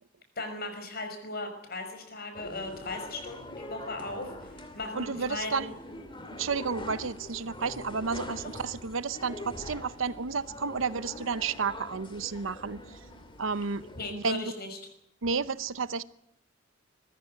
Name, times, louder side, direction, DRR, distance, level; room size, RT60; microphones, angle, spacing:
voice 1, 0.4-4.5 4.7-5.6 8.4-8.5 14.0-14.8, left 2 dB, 50° left, 5.7 m, -37 dB
sound 1, 2.3-14.1, left 1 dB, 25° left, 2.9 m, -44 dB
voice 2, 4.9-5.7 6.4-12.8 13.4-13.9 14.1-14.4 15.2-16.0, right 5 dB, 90° right, 0.8 m, -31 dB
21.0 x 15.0 x 9.7 m
head